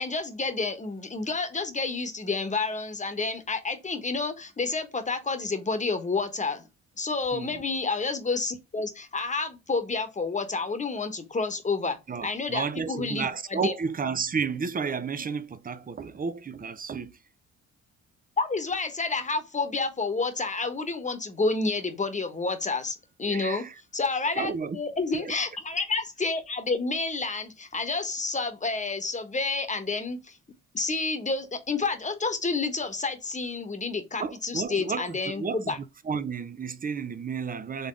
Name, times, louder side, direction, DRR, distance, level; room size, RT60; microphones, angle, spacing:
voice 1, 0.0-6.6 7.0-13.7 18.4-23.6 23.9-30.4 30.7-35.8, left 3 dB, 25° left, 1.2 m, -29 dB
voice 2, 7.3-7.6 12.1-17.2 23.3-23.7 24.4-24.8 25.2-25.3 34.2-35.8 36.0-37.9, right 5 dB, 30° right, 0.6 m, -32 dB
3.9 x 3.5 x 3.7 m
cardioid pair, 90°, 30 cm